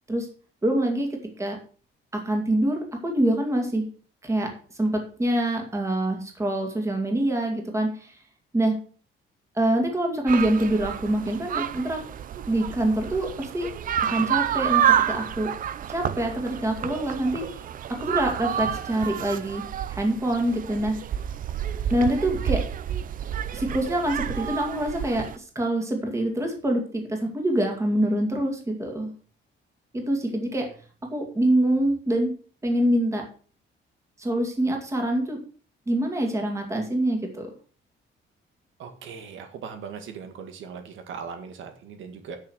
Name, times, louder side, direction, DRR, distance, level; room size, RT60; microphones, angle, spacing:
voice 1, 0.6-1.1 1.4-1.6 2.1-3.9 4.2-4.5 4.8-8.1 8.5-8.7 9.5-12.0 12.5-13.7 14.0-15.5 15.9-17.6 17.9-19.6 19.9-20.9 21.9-22.6 23.5-29.1 29.9-30.7 31.1-32.3 32.6-33.2 34.2-35.4 35.9-37.5, right 1 dB, 15° right, 2 dB, 2.4 m, -25 dB
sound 1, 10.3-25.4, right 9 dB, 45° right, 0.6 m, -29 dB
voice 2, 38.8-42.4, right 6 dB, 70° right, 6 dB, 1.8 m, -39 dB
10.5 x 6.6 x 6.3 m, 0.41 s
cardioid pair, 175°, 21 cm